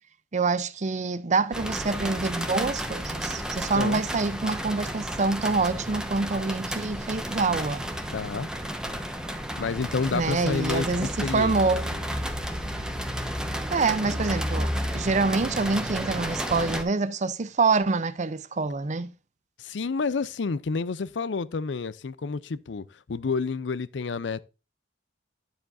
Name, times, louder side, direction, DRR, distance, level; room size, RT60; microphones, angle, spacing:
voice 1, 0.3-7.9 10.1-11.8 13.7-19.1, right 4 dB, 40° right, 0.6 m, -26 dB
sound 1, 1.5-16.8, equal, 5° right, 1.0 m, -32 dB
voice 2, 8.1-8.5 9.6-11.6 11.9-12.0 19.6-24.4, left 4 dB, 70° left, 0.5 m, -29 dB
10.0 x 7.2 x 2.6 m
head